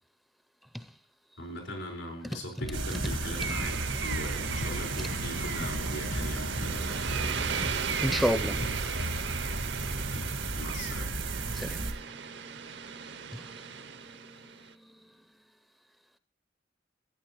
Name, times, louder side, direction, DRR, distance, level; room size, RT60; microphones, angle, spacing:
voice 1, 1.4-6.9 9.9-10.3 10.6-11.1, left 1 dB, 85° left, 4.6 m, -40 dB
sound 1, 2.6-9.0, left 1 dB, 65° left, 1.0 m, -41 dB
sound 2, 2.7-11.9, right 2 dB, 90° right, 1.6 m, -34 dB
sound 3, 3.4-14.7, right 7 dB, 65° right, 0.6 m, -37 dB
voice 2, 8.0-8.6 11.5-12.4 12.7-13.6, equal, ahead, 0.4 m, -32 dB
15.5 x 9.1 x 3.0 m
head